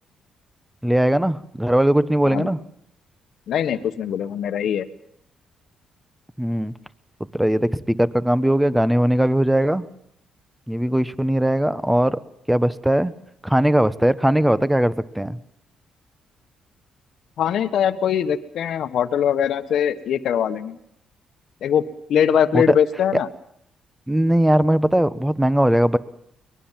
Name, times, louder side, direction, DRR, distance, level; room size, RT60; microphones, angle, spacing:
voice 1, 0.8-2.6 6.4-6.7 7.3-9.8 10.7-12.2 12.5-13.1 13.4-15.4 22.5-22.8 23.1-23.2 24.1-26.0, right 1 dB, 5° right, 15 dB, 1.1 m, -19 dB
voice 2, 3.5-4.9 17.4-20.8 21.6-21.8 22.1-23.3, left 8 dB, 70° left, 10 dB, 1.4 m, -21 dB
23.5 x 20.5 x 7.5 m, 0.72 s
cardioid pair, 90°, 0 cm